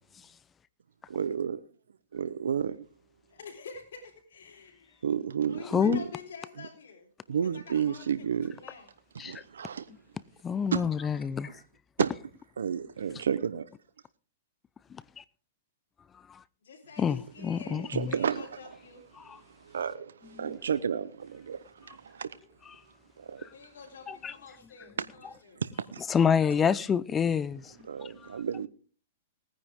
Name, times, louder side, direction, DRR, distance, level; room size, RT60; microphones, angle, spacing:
voice 1, 1.1-1.6 2.1-2.8 5.0-6.1 7.3-8.5 9.2-9.9 10.7-10.9 12.0-12.1 12.6-13.6 17.7-18.5 19.6-22.4 23.2-23.4 25.0-25.1 25.6-26.0 27.9-28.7, right 7 dB, 85° right, 0.8 m, -31 dB
voice 2, 3.3-5.1 5.5-7.0 7.4-8.9 16.6-19.0 23.5-25.6, left 5 dB, 70° left, 4.0 m, -48 dB
voice 3, 5.7-6.0 9.2-9.4 10.4-11.5 14.9-15.2 16.3-16.4 17.0-18.1 19.2-19.4 20.4-20.6 23.4-23.5 24.1-24.3 26.1-27.7 28.0-28.4, left 7 dB, 20° left, 0.6 m, -28 dB
19.5 x 9.8 x 3.6 m
hypercardioid pair, 130°, 0 cm